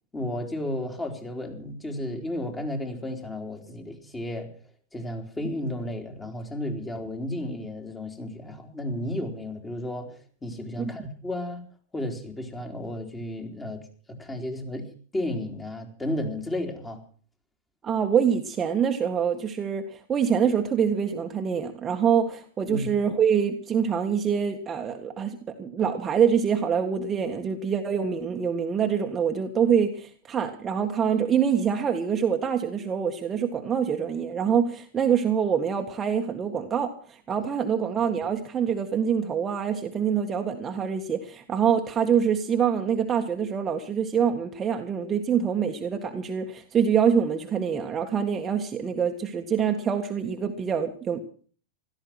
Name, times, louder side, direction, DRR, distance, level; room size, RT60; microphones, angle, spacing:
voice 1, 0.1-4.5 4.9-10.1 10.4-11.6 11.9-13.8 14.1-14.9 15.1-17.0 22.7-22.9, left 1 dB, 15° left, 3 dB, 3.7 m, -33 dB
voice 2, 17.8-51.2, right 7 dB, 25° right, 3 dB, 1.7 m, -25 dB
16.5 x 13.5 x 6.0 m, 0.43 s
hypercardioid pair, 110°, 0 cm